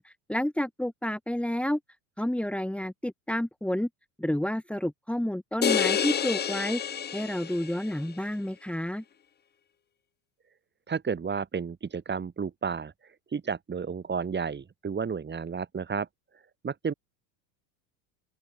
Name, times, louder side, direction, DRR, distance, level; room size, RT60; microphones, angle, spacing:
voice 1, 0.0-1.8 2.2-3.9 4.2-6.8 7.1-9.0, left 1 dB, ahead, 3.8 m, -30 dB
sound 1, 5.6-8.0, left 8 dB, 20° left, 0.9 m, -28 dB
voice 2, 10.9-12.9 13.3-16.1 16.6-16.9, right 6 dB, 20° right, 4.9 m, -32 dB
open air
supercardioid pair, 125°, 48 cm